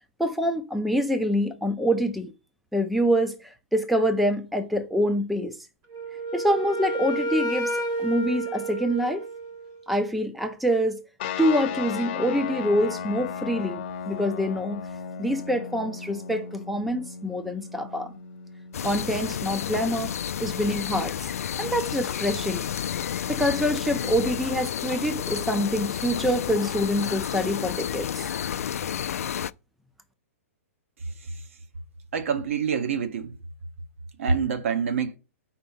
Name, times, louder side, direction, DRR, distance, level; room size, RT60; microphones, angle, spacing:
voice 1, 0.2-2.3 2.7-5.6 6.3-9.3 9.9-11.0 11.4-14.8 15.2-18.2 18.8-20.1 20.4-21.2 21.6-22.6 23.3-28.3, equal, ahead, 0.4 m, -26 dB
Wind instrument woodwind instrument, 5.9-9.8, right 1 dB, 20° right, 1.0 m, -30 dB
sound 1, 11.2-22.1, left 7 dB, 45° left, 0.8 m, -37 dB
sound 2, 18.7-29.5, left 9 dB, 85° left, 0.4 m, -31 dB
voice 2, 31.1-31.4 32.1-33.4 34.2-35.2, right 6 dB, 60° right, 1.1 m, -26 dB
4.4 x 4.3 x 5.5 m
hypercardioid pair, 165°, 8 cm